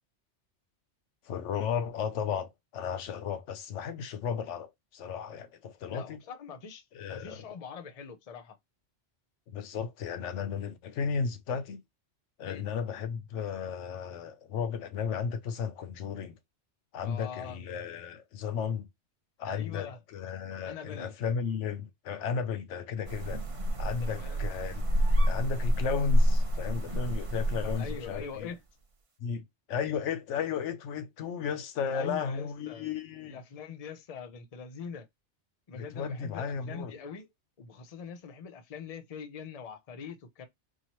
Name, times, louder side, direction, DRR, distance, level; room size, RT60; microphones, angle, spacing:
voice 1, 1.3-6.2 6.9-7.4 9.5-11.8 12.4-16.4 16.9-18.8 19.4-23.4 23.8-24.8 25.3-28.5 29.2-33.4 35.7-36.9, left 6 dB, 80° left, 1.0 m, -34 dB
voice 2, 5.9-6.8 7.1-8.6 12.4-12.6 17.0-17.6 19.4-20.0 20.6-21.2 23.9-24.5 27.8-28.6 31.9-32.9 33.3-35.1 35.7-37.3 37.6-40.5, left 6 dB, 40° left, 0.7 m, -43 dB
sound 1, 23.1-28.4, equal, 30° right, 0.8 m, -28 dB
4.7 x 2.8 x 3.0 m
omnidirectional pair, 1.2 m